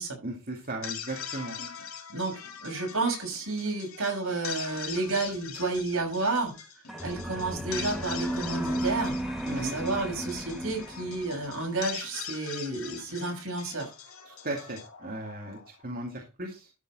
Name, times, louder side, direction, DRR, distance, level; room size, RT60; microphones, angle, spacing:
voice 1, 0.2-1.5 9.4-9.7 14.3-16.7, right 1 dB, 40° right, 0 dB, 2.3 m, -36 dB
sound 1, 0.6-15.9, left 7 dB, 70° left, 2.4 m, -42 dB
voice 2, 2.1-6.5 7.0-9.1 9.5-13.9, right 3 dB, 65° right, 2 dB, 6.2 m, -31 dB
sound 2, 6.9-11.5, right 1 dB, ahead, 1.6 m, -34 dB
13.0 x 6.8 x 4.1 m, 0.29 s
head